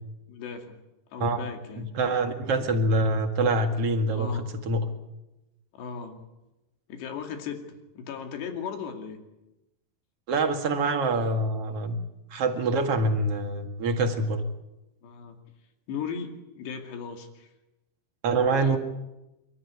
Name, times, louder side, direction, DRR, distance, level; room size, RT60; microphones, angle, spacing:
voice 1, 0.3-0.8 1.1-1.9 4.2-4.5 5.7-6.2 6.9-9.2 15.0-15.4 15.9-17.5 18.5-18.8, left 6 dB, 90° left, 5 dB, 4.6 m, -37 dB
voice 2, 1.8-4.9 10.3-12.0 12.3-14.4 18.2-18.8, right 2 dB, 45° right, 5 dB, 2.4 m, -25 dB
28.0 x 13.5 x 9.7 m, 0.97 s
omnidirectional pair, 4.7 m